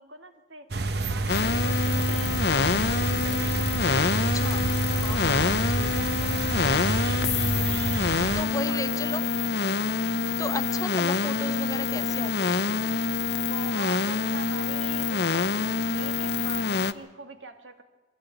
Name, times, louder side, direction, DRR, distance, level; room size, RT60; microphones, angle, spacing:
voice 1, 0.0-3.8 5.9-7.2 8.7-10.3 10.7-10.8 13.4-17.8, right 3 dB, 85° right, 7 dB, 2.0 m, -44 dB
sound 1, 0.7-8.4, right 2 dB, 60° right, 1.0 m, -28 dB
sound 2, 1.3-16.9, left 4 dB, 60° left, 0.7 m, -26 dB
voice 2, 4.1-4.7 5.0-5.9 8.3-9.2 10.4-12.8, left 2 dB, 20° left, 9 dB, 0.9 m, -35 dB
22.0 x 15.5 x 9.1 m, 1.3 s
head